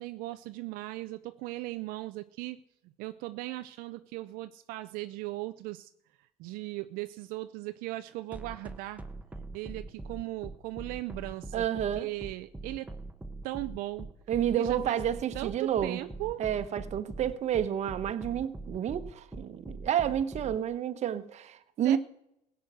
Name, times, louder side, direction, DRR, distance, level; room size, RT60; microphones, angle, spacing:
voice 1, 0.0-2.6 3.0-5.9 6.4-9.0 9.3-11.6 12.0-12.9 13.4-14.1 14.6-15.0 15.3-16.4 21.8-22.0, right 18 dB, 80° right, 0.5 m, -38 dB
sound 1, 8.3-20.6, right 2 dB, 10° right, 1.2 m, -42 dB
voice 2, 11.5-12.1 14.3-16.0 16.4-22.0, right 10 dB, 50° right, 1.1 m, -30 dB
16.0 x 8.1 x 6.3 m
cardioid pair, 100°, 14 cm